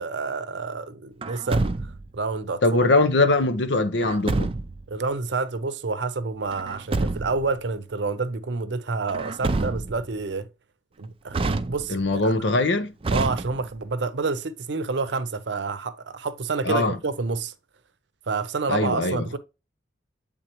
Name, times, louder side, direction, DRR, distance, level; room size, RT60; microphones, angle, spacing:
voice 1, 0.0-1.7 2.1-2.9 4.9-10.4 11.0-12.3 13.1-17.5 18.3-19.4, right 4 dB, 80° right, 0.6 m, -28 dB
Truck, 1.2-2.2 4.0-4.9 6.5-7.5 9.1-10.1 11.3-12.1 13.0-13.9, right 3 dB, 30° right, 0.4 m, -28 dB
voice 2, 2.6-4.5 11.9-12.9 16.6-17.0 18.7-19.4, left 2 dB, 85° left, 0.7 m, -22 dB
8.8 x 3.7 x 3.0 m
head